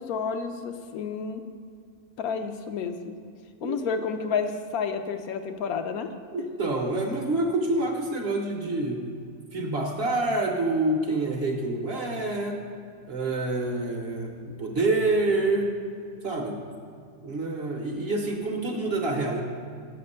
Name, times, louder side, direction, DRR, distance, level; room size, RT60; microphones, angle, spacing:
voice 1, 0.0-1.4 2.2-3.2 3.6-6.1, left 5 dB, 80° left, 7 dB, 1.1 m, -30 dB
voice 2, 6.3-9.1 9.5-12.6 13.1-15.8 16.2-16.6 17.2-19.4, right 2 dB, 50° right, 2 dB, 0.9 m, -27 dB
6.9 x 6.6 x 5.4 m, 2.3 s
omnidirectional pair, 1.6 m